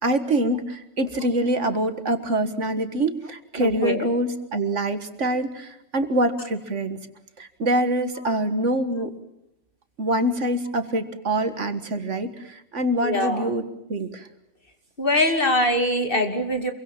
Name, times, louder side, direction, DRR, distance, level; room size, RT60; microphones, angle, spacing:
voice 1, 0.0-7.0 7.4-9.1 10.0-14.3, right 1 dB, 60° right, 9 dB, 1.9 m, -25 dB
voice 2, 3.6-4.1 13.0-13.5 15.0-16.7, left 1 dB, 40° left, 5 dB, 2.9 m, -23 dB
27.0 x 23.5 x 7.4 m, 0.85 s
omnidirectional pair, 1.4 m